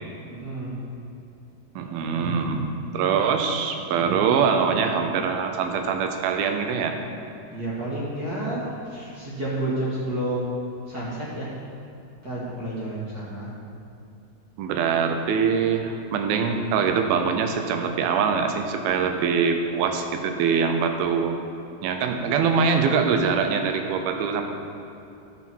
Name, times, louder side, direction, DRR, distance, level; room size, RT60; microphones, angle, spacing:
voice 1, 0.3-0.8 7.5-11.5 12.2-13.5, right 1 dB, 45° right, -7 dB, 1.2 m, -30 dB
voice 2, 1.8-7.0 14.6-21.4 21.8-24.4, right 6 dB, 75° right, 5 dB, 2.4 m, -23 dB
10.5 x 8.3 x 4.5 m, 2.7 s
omnidirectional pair, 4.6 m